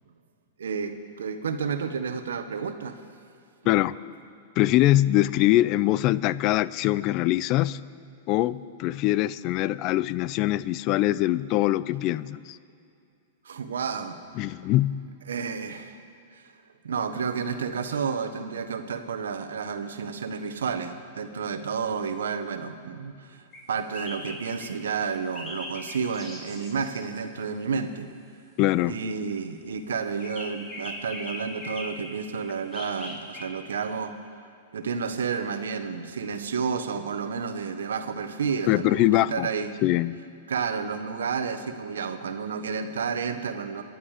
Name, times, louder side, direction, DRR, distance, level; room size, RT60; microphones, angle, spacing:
voice 1, 0.6-3.0 3.7-3.8 13.4-14.2 15.3-16.0 16.3-16.5 16.8-28.1 28.9-34.1 34.7-39.7 40.5-43.8, right 6 dB, 85° right, 8 dB, 1.2 m, -31 dB
voice 2, 3.7-4.0 4.6-7.8 8.3-12.6 14.4-15.0 28.6-28.9 38.7-39.5 39.8-40.2, left 15 dB, 45° left, 18 dB, 0.4 m, -23 dB
sound 1, 23.5-23.6 23.9-24.7 25.3-27.0 30.2-32.0 32.7-33.4, left 1 dB, 30° left, 4.3 m, -39 dB
24.5 x 11.0 x 5.0 m, 2.4 s
hypercardioid pair, 125°, 0 cm